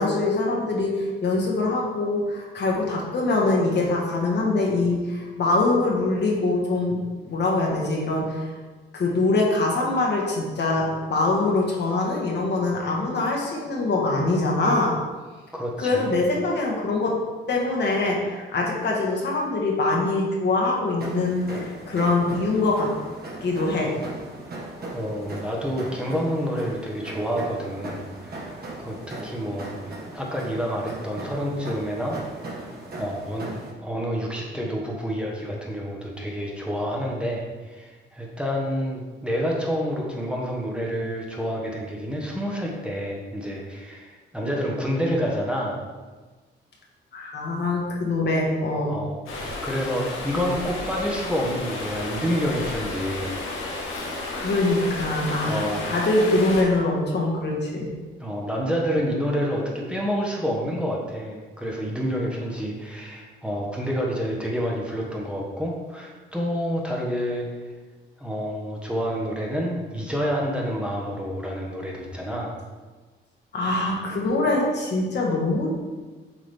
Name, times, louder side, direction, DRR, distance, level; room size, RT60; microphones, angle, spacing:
voice 1, 0.0-7.0 7.2-8.4 8.9-14.9 15.8-17.2 17.5-22.9 23.4-23.9 47.1-48.9 54.3-57.9 73.5-75.7, left 2 dB, 55° left, -2 dB, 1.5 m, -23 dB
voice 2, 15.5-16.1 24.9-29.7 30.1-32.2 32.5-33.5 33.8-45.8 48.9-53.4 55.4-55.9 58.2-67.5 68.2-72.5, equal, 5° right, -3 dB, 1.2 m, -28 dB
sound 1, 21.0-33.7, right 2 dB, 50° right, 1.5 m, -38 dB
Stream, 49.3-56.6, left 2 dB, 90° left, 1.2 m, -32 dB
7.3 x 3.8 x 3.5 m, 1.3 s
cardioid pair, 85°, 21 cm